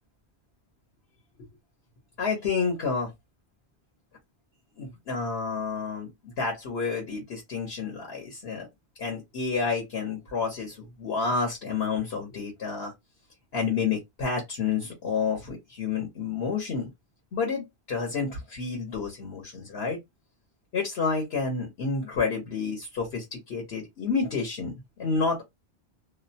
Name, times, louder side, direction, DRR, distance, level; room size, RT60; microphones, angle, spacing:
voice 1, 2.2-3.1 4.8-8.7 9.0-12.9 13.5-16.9 17.3-20.0 20.7-25.4, left 5 dB, 70° left, 1.2 m, -29 dB
2.5 x 2.0 x 2.7 m
omnidirectional pair, 1.1 m